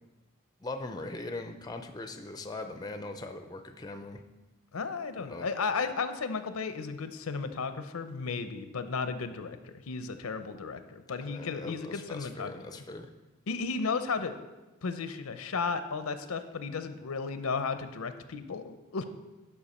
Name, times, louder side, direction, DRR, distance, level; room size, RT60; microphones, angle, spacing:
voice 1, 0.6-4.2 5.3-5.5 11.2-13.1, left 2 dB, 20° left, 7 dB, 0.4 m, -40 dB
voice 2, 4.7-12.5 13.5-14.4 14.8-19.1, left 4 dB, 85° left, 10 dB, 0.6 m, -34 dB
12.0 x 5.5 x 4.2 m, 1.1 s
head